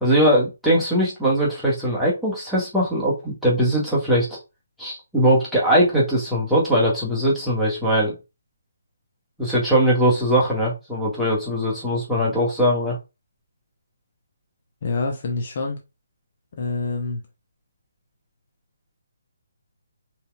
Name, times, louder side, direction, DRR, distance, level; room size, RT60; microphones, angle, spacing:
voice 1, 0.0-4.4 4.8-8.2 9.4-13.0, equal, ahead, 1.8 m, -20 dB
voice 2, 14.8-15.8 16.6-17.2, left 3 dB, 40° left, 1.0 m, -26 dB
5.4 x 3.5 x 2.4 m
figure-of-eight pair, 140°, 0 cm